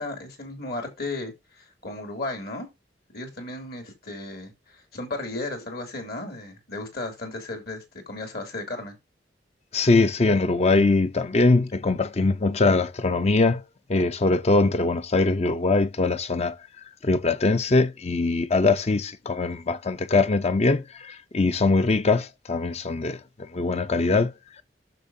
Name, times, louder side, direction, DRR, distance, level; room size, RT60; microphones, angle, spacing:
voice 1, 0.0-2.7 3.1-8.9, left 2 dB, 60° left, 2.9 m, -35 dB
voice 2, 9.7-13.6 13.9-16.6 17.0-24.3, left 3 dB, 40° left, 0.6 m, -22 dB
10.5 x 6.6 x 2.7 m
head